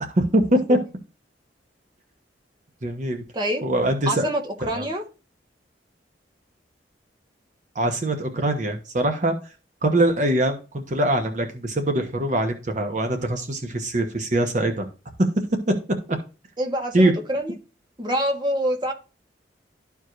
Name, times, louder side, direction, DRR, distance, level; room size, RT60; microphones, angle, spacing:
voice 1, 0.1-0.8 2.8-3.2 3.6-4.3 4.7-4.9 7.7-9.3 9.8-14.9 16.1-16.2 16.9-17.1, right 1 dB, 45° right, 1.0 m, -22 dB
voice 2, 3.3-3.6 4.1-5.0 16.6-17.5 18.0-18.9, equal, 25° right, 1.4 m, -26 dB
13.0 x 4.7 x 2.6 m
head